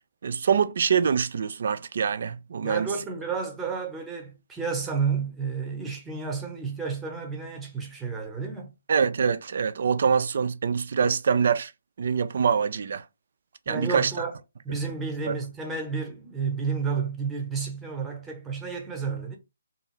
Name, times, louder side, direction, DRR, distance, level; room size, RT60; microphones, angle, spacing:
voice 1, 0.2-2.9 8.9-11.7 12.0-13.0 13.7-14.3 15.3-15.4, right 6 dB, 55° right, 0.3 m, -24 dB
voice 2, 2.6-8.7 13.7-14.3 14.6-19.4, right 5 dB, 10° right, 0.8 m, -31 dB
2.7 x 2.3 x 3.1 m
figure-of-eight pair, 140°, 0 cm